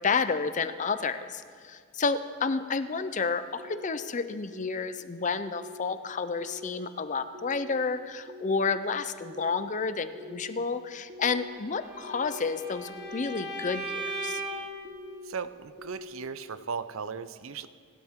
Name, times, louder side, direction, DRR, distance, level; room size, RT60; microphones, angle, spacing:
voice 1, 0.0-14.4, left 4 dB, 35° left, 11 dB, 0.5 m, -30 dB
sound 1, 3.6-4.1 4.5-5.0 5.5-5.9 6.4-6.9 7.3-7.8 8.3-8.8 9.2-9.7 10.1-10.6 11.1-11.6 12.0-12.5 13.0-13.4 13.9-14.4 14.8-15.3 15.8-16.3, left 2 dB, 35° right, 1.3 m, -45 dB
Bowed string instrument, 11.7-14.7, right 2 dB, 5° right, 4.7 m, -37 dB
voice 2, 15.2-17.7, right 5 dB, 70° right, 13 dB, 0.7 m, -37 dB
28.0 x 12.5 x 3.7 m, 2.1 s
head